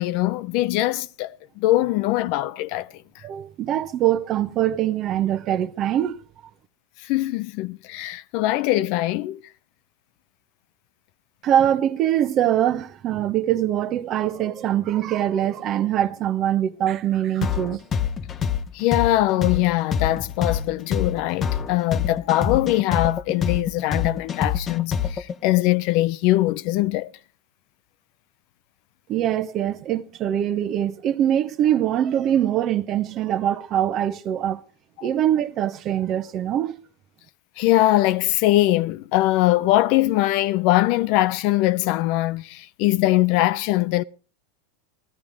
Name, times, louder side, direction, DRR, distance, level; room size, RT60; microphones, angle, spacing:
voice 1, 0.0-3.2 7.0-9.4 18.7-27.1 35.0-35.1 37.6-44.0, left 16 dB, 55° left, 0.5 m, -22 dB
voice 2, 3.2-6.2 11.4-17.8 29.1-34.6 35.0-36.7, right 11 dB, 35° right, 0.9 m, -23 dB
sound 1, 17.4-25.3, left 7 dB, 25° left, 0.9 m, -25 dB
14.5 x 14.0 x 3.6 m
supercardioid pair, 130°, 0 cm